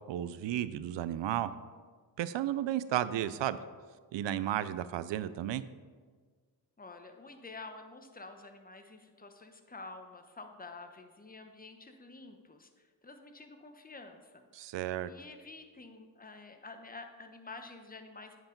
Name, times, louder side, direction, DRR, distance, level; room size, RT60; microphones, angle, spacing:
voice 1, 0.1-1.5 2.2-3.6 4.1-5.6 14.6-15.1, right 12 dB, 75° right, 15 dB, 0.5 m, -33 dB
voice 2, 6.8-14.5 15.0-18.4, left 3 dB, 20° left, 6 dB, 1.1 m, -49 dB
9.3 x 4.8 x 5.3 m, 1.5 s
cardioid pair, 50°, 44 cm